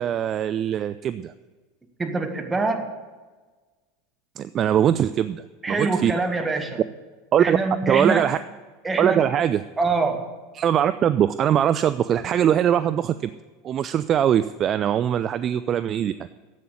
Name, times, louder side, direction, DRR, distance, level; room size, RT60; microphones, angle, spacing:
voice 1, 0.0-1.3 4.4-6.1 7.3-7.6 7.9-8.4 9.0-9.6 10.5-13.3 13.6-16.1, right 10 dB, 35° right, 13 dB, 0.4 m, -21 dB
voice 2, 2.0-2.9 5.6-6.8 7.4-8.3 8.8-9.3 9.8-10.3, right 3 dB, 15° right, 4 dB, 1.7 m, -24 dB
10.5 x 8.5 x 8.5 m, 1.3 s
figure-of-eight pair, 80°, 0 cm